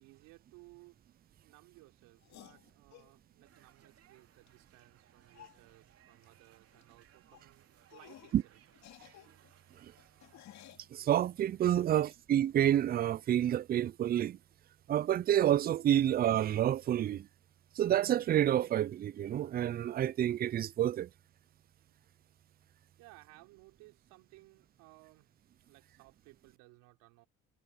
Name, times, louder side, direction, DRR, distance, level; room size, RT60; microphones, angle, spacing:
voice 1, 0.0-8.6 11.8-12.1 23.0-25.4 25.6-27.3, right 22 dB, 85° right, 4.0 m, -60 dB
sound 1, 2.2-3.1 4.5-4.6 4.8-4.9 5.3-5.6 6.2-6.5 6.7-6.9 7.3-7.5 7.9-8.4 8.7-10.9 11.6-12.2, left 12 dB, 60° left, 2.4 m, -56 dB
sound 2, 3.4-10.4, right 9 dB, 50° right, 2.7 m, -66 dB
voice 2, 10.9-14.4 14.9-17.3 17.8-21.1, right 11 dB, 30° right, 0.4 m, -29 dB
supercardioid pair, 90°, 31 cm